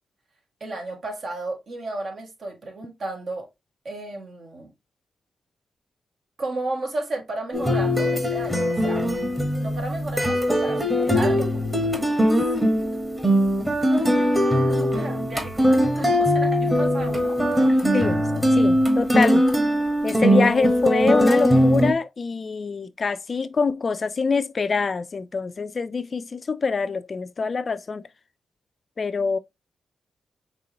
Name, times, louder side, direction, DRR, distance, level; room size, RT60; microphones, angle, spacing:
voice 1, 0.6-3.5 3.8-4.7 6.4-9.1 9.6-12.6 13.8-17.4, right 2 dB, 55° right, 1.9 m, -34 dB
sound 1, 7.5-21.9, equal, 15° right, 1.3 m, -21 dB
voice 2, 17.9-18.3 18.5-19.4 20.0-28.0 29.0-29.4, left 4 dB, 40° left, 0.4 m, -25 dB
5.1 x 3.3 x 2.8 m
cardioid pair, 100°, 0 cm